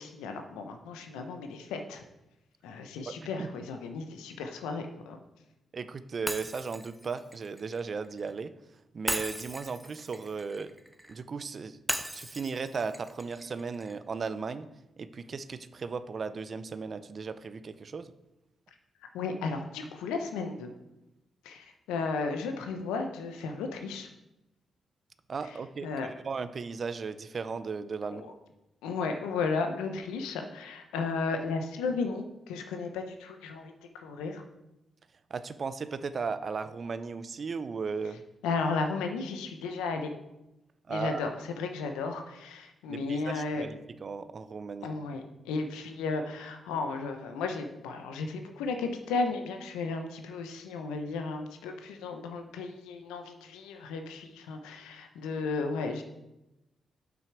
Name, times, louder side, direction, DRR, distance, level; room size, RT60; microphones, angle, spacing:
voice 1, 0.0-2.0 2.6-5.2 19.1-20.7 21.4-24.1 25.8-26.1 28.1-28.2 28.8-34.4 38.4-40.1 40.9-41.3 41.6-43.6 44.8-56.0, left 4 dB, 90° left, 5 dB, 0.8 m, -34 dB
voice 2, 3.1-3.5 5.7-8.5 8.9-10.7 11.1-11.8 12.1-14.7 15.0-18.1 25.3-28.3 35.3-38.2 40.9-41.2 42.9-44.9, right 5 dB, 55° right, 13 dB, 0.5 m, -36 dB
Shatter, 6.3-8.3 9.1-11.2 11.9-14.0, right 1 dB, 10° right, 0.6 m, -38 dB
7.7 x 5.9 x 4.6 m, 0.93 s
supercardioid pair, 50°, 0 cm